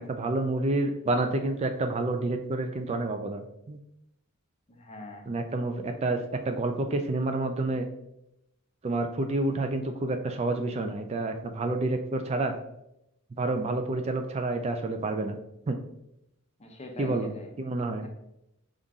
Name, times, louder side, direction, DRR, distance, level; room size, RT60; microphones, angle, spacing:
voice 1, 0.0-3.8 5.3-6.2 6.5-7.9 8.8-12.6 13.4-15.4 15.7-15.8 17.0-17.3 17.6-18.1, right 2 dB, 30° right, 6 dB, 0.3 m, -29 dB
voice 2, 4.7-5.3 16.6-17.5 18.0-18.1, left 2 dB, 30° left, 2 dB, 0.7 m, -42 dB
5.4 x 2.5 x 3.5 m, 0.83 s
head